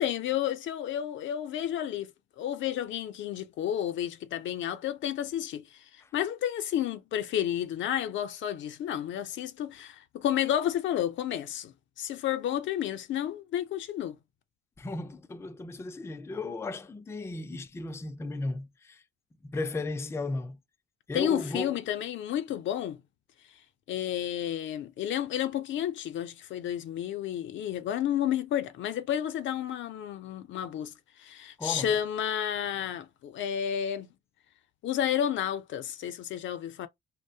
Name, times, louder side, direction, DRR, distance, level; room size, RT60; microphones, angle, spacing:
voice 1, 0.0-2.1 2.4-5.6 6.1-14.2 21.1-23.0 23.9-30.9 31.2-34.1 34.8-36.9, left 10 dB, 70° left, 0.5 m, -31 dB
voice 2, 14.8-19.0 19.4-20.6 21.1-21.7 31.6-32.0, left 2 dB, 15° left, 0.4 m, -35 dB
2.6 x 2.0 x 2.6 m
cardioid pair, 90°, 20 cm